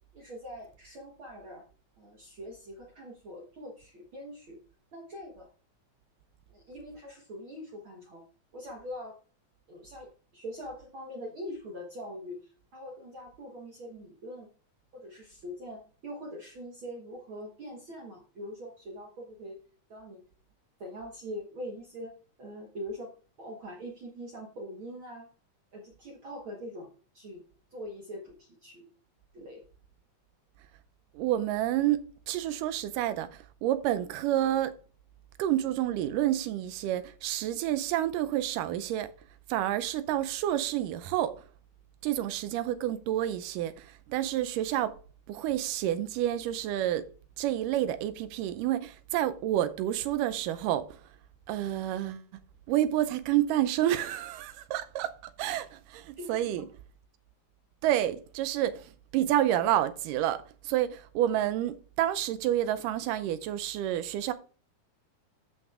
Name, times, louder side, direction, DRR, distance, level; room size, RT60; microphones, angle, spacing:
voice 1, 0.1-1.6 2.0-4.6 4.9-5.5 6.5-8.2 8.5-9.2 9.7-14.5 14.9-19.6 19.9-20.2 20.8-23.1 23.4-25.3 25.7-26.9 27.1-27.4 27.7-28.8 29.3-29.6 56.2-56.7, equal, 50° right, 1.6 m, -43 dB
voice 2, 31.1-34.7 35.4-39.1 39.5-41.5 42.0-45.0 45.3-47.1 47.4-51.0 51.5-52.4 52.7-56.7 57.8-64.3, right 12 dB, 90° right, 2.3 m, -29 dB
13.5 x 6.0 x 2.4 m
omnidirectional pair, 3.7 m